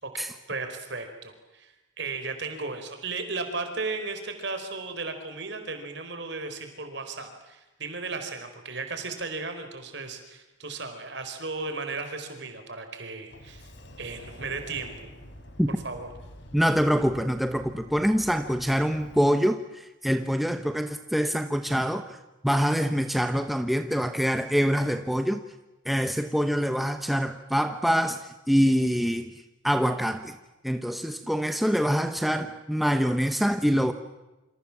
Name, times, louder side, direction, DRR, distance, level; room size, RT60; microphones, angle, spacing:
voice 1, 0.0-13.7 14.0-14.9 15.8-16.1, right 3 dB, 55° right, 7 dB, 4.7 m, -35 dB
Sliding door, 13.3-19.2, equal, 60° left, 4.0 m, -47 dB
voice 2, 16.5-22.2 22.4-25.4 25.8-30.4 30.6-33.9, equal, ahead, 7 dB, 1.0 m, -25 dB
28.5 x 26.5 x 7.4 m, 1.0 s
head